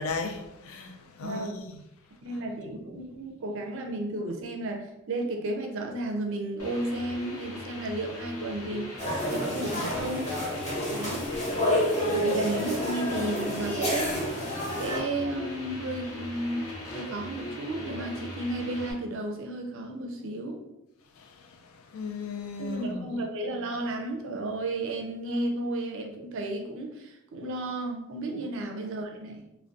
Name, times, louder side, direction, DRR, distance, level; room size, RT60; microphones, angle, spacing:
voice 1, 0.0-1.8 10.8-11.1 11.7-12.1 21.2-23.1, left 4 dB, 70° left, 0.4 m, -37 dB
voice 2, 1.2-1.5 2.2-10.3 10.9-11.3 12.1-14.2 14.7-16.7 16.9-20.6 22.6-29.5, right 2 dB, 60° right, 0.4 m, -33 dB
sound 1, 6.6-18.9, left 1 dB, 90° left, 0.7 m, -39 dB
sound 2, 9.0-15.0, left 1 dB, 30° left, 0.8 m, -29 dB
2.4 x 2.1 x 2.5 m
head